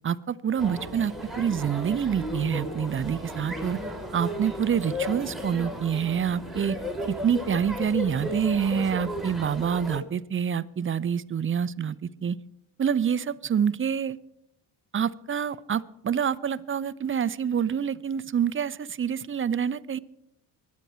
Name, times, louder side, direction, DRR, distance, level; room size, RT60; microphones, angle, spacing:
voice 1, 0.0-3.8 4.1-6.8 7.1-12.4 12.8-14.2 14.9-20.0, right 8 dB, 30° right, 17 dB, 0.6 m, -27 dB
sound 1, 0.6-10.0, left 1 dB, ahead, 3.2 m, -35 dB
24.0 x 9.5 x 4.4 m, 0.79 s
supercardioid pair, 65°, 45 cm